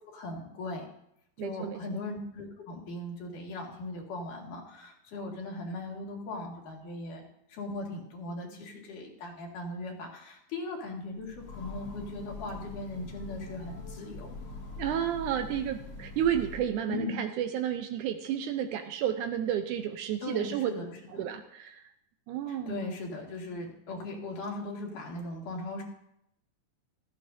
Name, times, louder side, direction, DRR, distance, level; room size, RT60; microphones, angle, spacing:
voice 1, 0.1-0.9 1.4-7.2 7.5-14.3 16.9-17.1 20.2-21.3 22.5-25.8, left 2 dB, 70° left, -1 dB, 3.4 m, -39 dB
voice 2, 1.4-1.8 14.8-20.7 21.1-21.8 22.3-22.8, right 10 dB, 75° right, 7 dB, 2.0 m, -31 dB
Train, 11.2-16.9, left 3 dB, 55° left, 1.7 m, -43 dB
16.0 x 13.5 x 2.7 m, 0.76 s
omnidirectional pair, 3.9 m